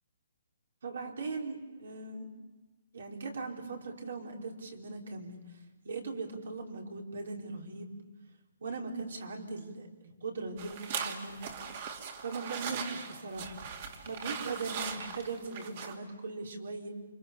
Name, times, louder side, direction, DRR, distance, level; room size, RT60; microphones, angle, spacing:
voice 1, 0.8-2.3 2.9-5.4 5.8-7.9 8.6-11.4 12.2-13.6 14.0-16.9, right 3 dB, 70° right, 2 dB, 4.9 m, -39 dB
sound 1, 10.6-16.0, right 6 dB, 40° right, 2.5 m, -40 dB
29.0 x 25.5 x 7.2 m, 1.1 s
hypercardioid pair, 165°, 0 cm